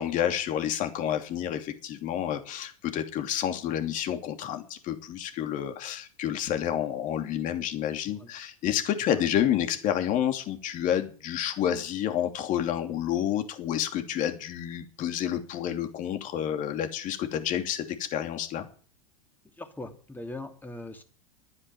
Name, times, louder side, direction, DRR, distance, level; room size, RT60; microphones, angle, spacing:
voice 1, 0.0-18.7, left 10 dB, 45° left, 6 dB, 2.8 m, -29 dB
voice 2, 19.6-21.0, left 2 dB, 10° left, 5 dB, 2.9 m, -40 dB
12.5 x 9.7 x 9.3 m, 0.41 s
hypercardioid pair, 95°, 19 cm